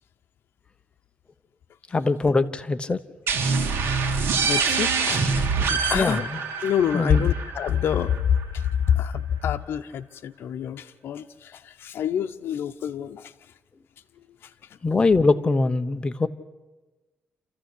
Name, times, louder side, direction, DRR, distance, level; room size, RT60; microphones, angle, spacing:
voice 1, 1.9-3.0 5.9-6.4 6.9-7.2 14.8-16.3, left 3 dB, 25° left, 10 dB, 1.0 m, -22 dB
sound 1, 3.3-8.7, right 5 dB, 85° right, 3.0 m, -25 dB
voice 2, 3.9-5.3 5.6-6.2 6.6-13.3 14.4-14.5, left 9 dB, 75° left, 7 dB, 0.9 m, -27 dB
27.5 x 14.5 x 8.5 m, 1.2 s
cardioid pair, 115°, 4 cm